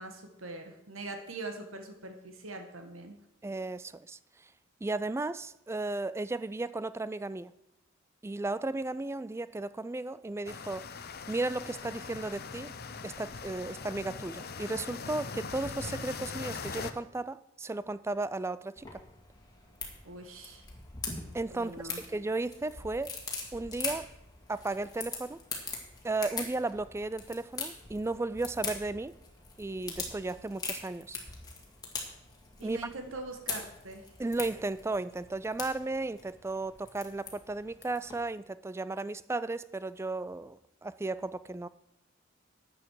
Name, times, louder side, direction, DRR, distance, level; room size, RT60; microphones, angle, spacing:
voice 1, 0.0-3.2 20.0-20.7 21.5-22.0 32.6-34.1, right 2 dB, 85° right, 1.7 m, -42 dB
voice 2, 3.4-4.2 4.8-7.5 8.2-10.9 11.3-12.7 13.0-19.0 21.3-23.2 23.5-24.1 24.5-25.4 26.0-29.2 29.6-31.2 32.6-32.8 34.2-41.7, right 2 dB, 15° right, 0.3 m, -35 dB
sound 1, 10.4-16.9, left 5 dB, 50° left, 0.8 m, -41 dB
sound 2, 18.8-38.2, left 4 dB, 20° left, 2.1 m, -42 dB
12.5 x 8.7 x 4.8 m
head